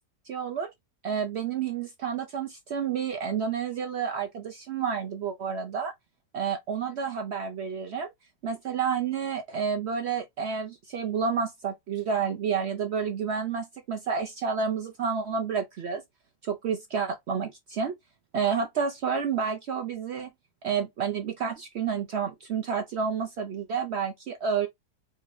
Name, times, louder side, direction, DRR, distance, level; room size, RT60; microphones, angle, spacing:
voice 1, 0.3-0.7 1.0-5.9 6.3-8.1 8.4-16.0 16.4-17.9 18.3-20.3 20.6-24.7, right 6 dB, 80° right, 0.6 m, -30 dB
3.7 x 2.6 x 3.0 m
omnidirectional pair, 1.8 m